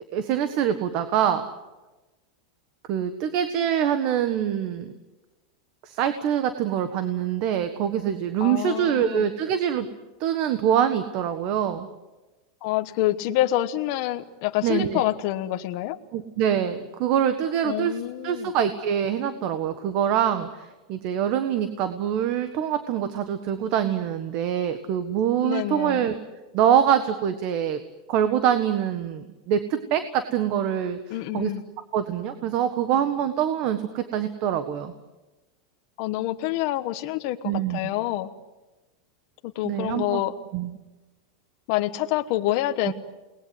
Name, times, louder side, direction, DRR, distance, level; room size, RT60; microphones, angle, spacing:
voice 1, 0.1-1.5 2.9-4.9 5.8-9.9 10.2-11.9 14.6-15.1 16.1-26.1 26.5-27.8 28.1-31.5 31.9-34.9 37.4-37.8 39.6-40.2 40.5-40.7, right 9 dB, 40° right, 9 dB, 1.5 m, -25 dB
voice 2, 8.4-9.2 12.6-16.0 17.6-18.5 25.4-26.1 31.1-31.6 36.0-38.3 39.4-40.3 41.7-42.9, left 15 dB, 40° left, 7 dB, 1.2 m, -27 dB
30.0 x 20.0 x 7.9 m, 1.1 s
supercardioid pair, 170°, 3 cm